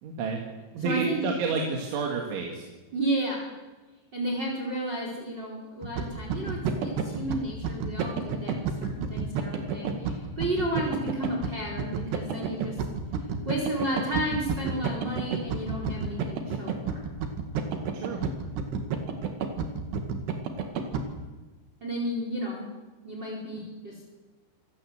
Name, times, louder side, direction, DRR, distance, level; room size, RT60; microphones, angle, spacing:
voice 1, 0.0-0.4 0.7-2.6 17.9-18.2, right 4 dB, 85° right, 1 dB, 4.7 m, -30 dB
voice 2, 0.8-1.3 2.9-3.5 4.1-12.8 13.4-17.0 21.8-22.7 23.0-24.0, right 1 dB, 25° right, -1 dB, 4.7 m, -32 dB
sound 1, 5.8-21.0, right 6 dB, 70° right, 4.1 m, -30 dB
27.0 x 16.5 x 8.2 m, 1.2 s
omnidirectional pair, 5.3 m